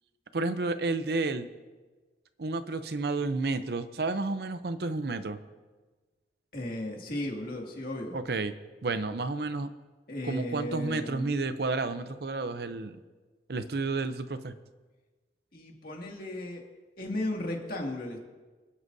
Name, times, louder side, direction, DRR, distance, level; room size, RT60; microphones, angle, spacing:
voice 1, 0.3-1.5 2.4-5.4 8.1-8.5 8.8-9.7 10.2-13.0 13.5-14.6, right 3 dB, 60° right, 11 dB, 0.6 m, -31 dB
voice 2, 6.5-8.2 10.1-11.3 15.5-16.6 17.0-18.2, left 1 dB, 55° left, 0 dB, 2.2 m, -35 dB
26.0 x 9.6 x 2.7 m, 1.3 s
head